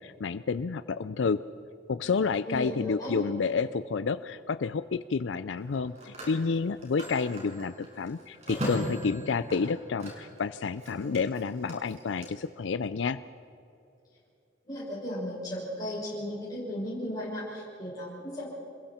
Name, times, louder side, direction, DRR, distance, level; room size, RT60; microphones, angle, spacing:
voice 1, 0.0-1.4 1.9-13.2, left 5 dB, 80° left, 14 dB, 0.5 m, -30 dB
voice 2, 2.4-3.2 14.7-18.5, left 1 dB, 20° left, -8 dB, 6.1 m, -35 dB
Telephone, 3.4-3.6 5.6-10.4 10.7-12.3, equal, 35° right, 6.2 m, -39 dB
27.5 x 21.5 x 4.4 m, 2.7 s
head